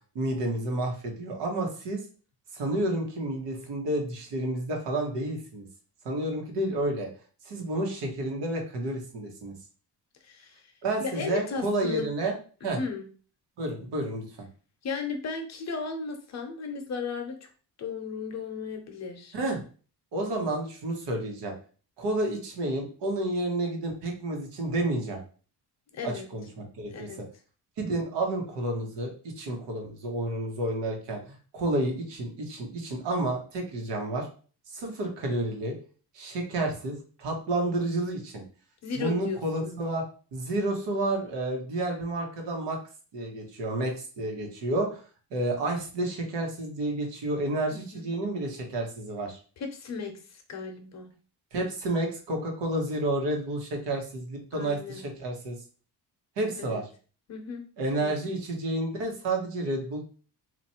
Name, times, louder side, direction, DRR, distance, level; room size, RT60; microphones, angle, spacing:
voice 1, 0.1-2.0 2.5-5.7 6.0-7.1 7.4-9.5 10.8-12.3 12.6-12.8 13.6-14.5 19.3-19.6 20.1-21.5 22.0-25.2 26.0-27.1 27.8-34.3 34.7-35.7 36.1-38.4 38.9-40.0 40.3-42.8 43.1-45.0 45.3-49.4 51.5-55.6 56.4-56.9 57.8-60.0, right 2 dB, 90° right, 2 dB, 1.2 m, -30 dB
voice 2, 10.2-10.6 11.0-12.1 12.8-13.0 14.8-17.5 17.8-19.3 25.9-26.3 26.9-27.2 34.8-34.9 38.8-39.8 47.7-48.1 49.6-51.1 54.5-55.0 56.6-56.8 57.3-57.6 58.0-58.3, left 5 dB, 40° left, 4 dB, 0.7 m, -35 dB
3.0 x 2.5 x 4.2 m, 0.39 s
cardioid pair, 175°, 41 cm